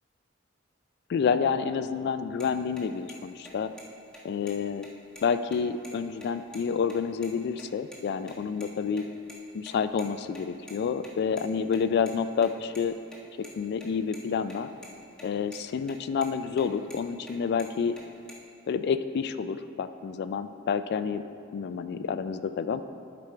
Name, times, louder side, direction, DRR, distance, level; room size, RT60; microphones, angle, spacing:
voice 1, 1.1-3.7 4.2-4.9 5.2-9.0 9.5-13.0 13.4-14.7 15.2-17.9 18.7-21.2 21.5-22.8, left 6 dB, 55° left, 11 dB, 0.3 m, -29 dB
sound 1, 2.4-2.5 2.8-2.9 3.1-3.2 3.4-3.8 4.1-4.2 4.5-4.6 4.8-5.9 6.2-6.3 6.5-6.6 6.9-7.3 7.6-8.0 8.3-9.3 9.6-12.1 12.4-14.2 14.5-14.6 14.8-15.2 15.5-15.9 16.2-17.3 17.6-18.3, left 1 dB, 5° left, 1.3 m, -48 dB
11.5 x 5.1 x 4.5 m, 2.5 s
head